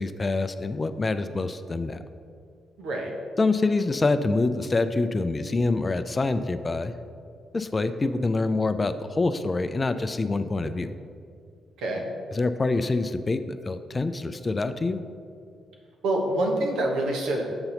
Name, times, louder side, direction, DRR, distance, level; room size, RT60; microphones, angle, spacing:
voice 1, 0.0-2.0 3.4-6.9 7.5-10.9 12.3-15.0, left 3 dB, 35° left, 10 dB, 0.4 m, -26 dB
voice 2, 2.8-3.1 11.8-12.0 16.0-17.4, right 1 dB, 70° right, 1 dB, 1.0 m, -26 dB
7.9 x 5.6 x 3.9 m, 2.3 s
hypercardioid pair, 40°, 0 cm